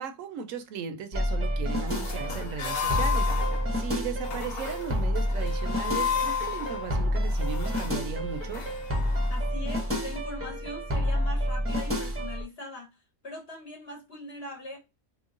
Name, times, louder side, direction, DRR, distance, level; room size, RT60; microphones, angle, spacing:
voice 1, 0.0-8.6, right 7 dB, 70° right, 1.0 m, -37 dB
sound 1, 1.1-12.4, equal, 15° right, 0.6 m, -29 dB
sound 2, 1.9-9.5, left 7 dB, 75° left, 1.2 m, -34 dB
voice 2, 9.3-14.8, left 1 dB, 50° left, 1.2 m, -41 dB
3.0 x 2.2 x 3.6 m
omnidirectional pair, 1.5 m